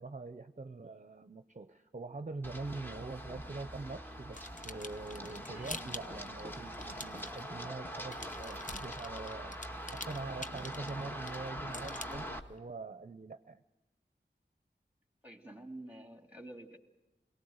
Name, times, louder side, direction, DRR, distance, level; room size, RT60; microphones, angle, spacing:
voice 1, 0.0-9.6 9.9-13.6, right 3 dB, 40° right, 10 dB, 0.7 m, -44 dB
Run, 2.4-12.4, equal, 10° left, 1.5 m, -43 dB
sound 1, 4.3-7.8 8.1-12.6, left 2 dB, 45° left, 0.9 m, -46 dB
voice 2, 15.2-16.8, right 1 dB, 10° right, 5 dB, 2.5 m, -49 dB
21.5 x 18.5 x 8.0 m, 0.98 s
wide cardioid pair, 50°, 18 cm